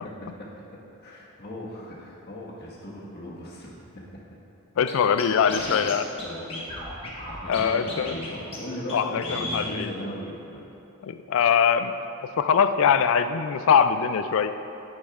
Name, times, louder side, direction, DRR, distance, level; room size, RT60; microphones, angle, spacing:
voice 1, 0.0-0.5 1.0-3.7 4.8-5.0 6.2-6.4 7.3-10.6, equal, 45° left, -5 dB, 1.5 m, -38 dB
voice 2, 4.8-6.1 7.5-8.2 8.9-9.9 11.0-11.9 12.4-14.6, left 7 dB, 60° left, 10 dB, 0.3 m, -22 dB
Scratching (performance technique), 4.9-5.0 5.2-5.9 6.2-6.3 6.5-7.6 7.9-8.3 8.5-8.6 8.9-9.0 9.2-9.7, left 2 dB, 25° left, 1.3 m, -34 dB
10.0 x 9.4 x 2.4 m, 2.8 s
head